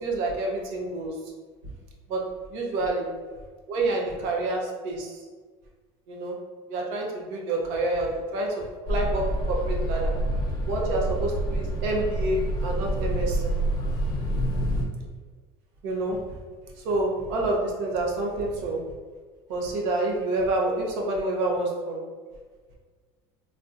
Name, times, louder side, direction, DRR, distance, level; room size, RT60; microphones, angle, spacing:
voice 1, 0.0-1.2 2.1-2.2 2.5-3.1 3.7-5.2 6.1-6.4 6.7-10.1 10.7-13.5 15.8-16.4 16.8-18.8 19.5-22.0, right 2 dB, 80° right, -1 dB, 0.7 m, -28 dB
sound 1, 8.9-14.9, right 1 dB, 30° left, 0.6 m, -27 dB
3.5 x 2.2 x 2.5 m, 1.5 s
cardioid pair, 135°, 14 cm